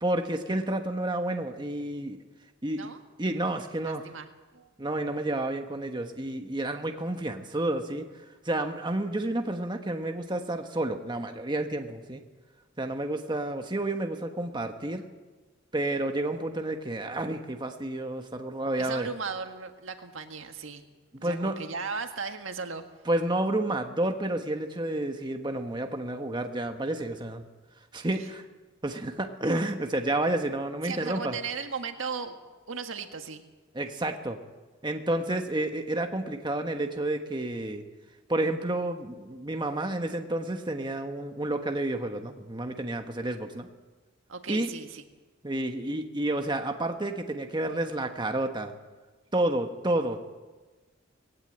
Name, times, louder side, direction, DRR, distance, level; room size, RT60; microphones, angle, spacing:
voice 1, 0.0-2.2 2.6-2.9 3.2-4.1 4.8-8.0 8.4-12.2 12.8-15.0 15.7-19.1 21.2-21.6 23.1-27.4 27.9-28.4 28.8-31.4 33.7-34.4 34.8-37.8 38.3-43.7 44.5-44.7 45.4-48.7 49.3-50.3, right 1 dB, 20° right, 5 dB, 1.2 m, -30 dB
voice 2, 3.8-4.3 4.5-4.7 18.8-20.8 21.2-22.8 30.8-32.4 32.7-33.4 44.3-45.0, right 5 dB, 75° right, 6 dB, 1.7 m, -36 dB
20.0 x 16.5 x 8.8 m, 1.2 s
head